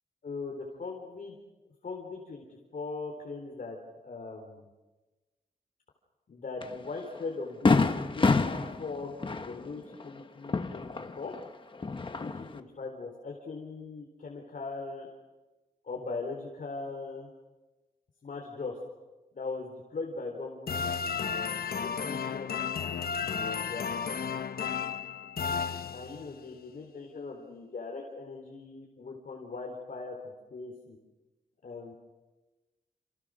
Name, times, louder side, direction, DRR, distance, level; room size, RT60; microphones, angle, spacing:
voice 1, 0.2-1.3 1.8-3.8 4.0-4.7 6.3-11.3 12.0-15.1 15.8-17.3 18.2-18.8 19.3-20.8 21.8-22.6 23.7-23.9 25.9-31.0 31.6-31.9, left 3 dB, 60° left, 1 dB, 4.1 m, -40 dB
Fireworks, 6.6-6.7 7.2-7.3 7.7-11.4 11.7-12.6, left 3 dB, 35° left, 1.3 m, -28 dB
sound 1, 20.7-26.4, left 6 dB, 75° left, 1.0 m, -33 dB
29.0 x 29.0 x 6.6 m, 1.1 s
wide cardioid pair, 175°, 16 cm